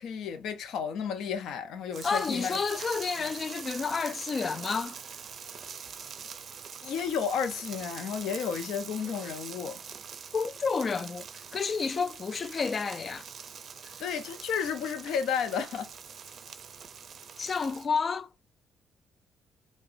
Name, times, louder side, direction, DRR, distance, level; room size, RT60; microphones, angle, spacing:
voice 1, 0.0-2.6 3.2-3.3 6.8-9.8 14.0-15.9, left 7 dB, 80° left, 0.6 m, -32 dB
sound 1, 1.9-17.9, right 7 dB, 55° right, 0.5 m, -44 dB
voice 2, 2.0-5.0 10.3-11.3 11.5-13.3 17.4-18.3, left 5 dB, 40° left, 0.3 m, -30 dB
4.8 x 2.2 x 2.6 m
cardioid pair, 90°, 0 cm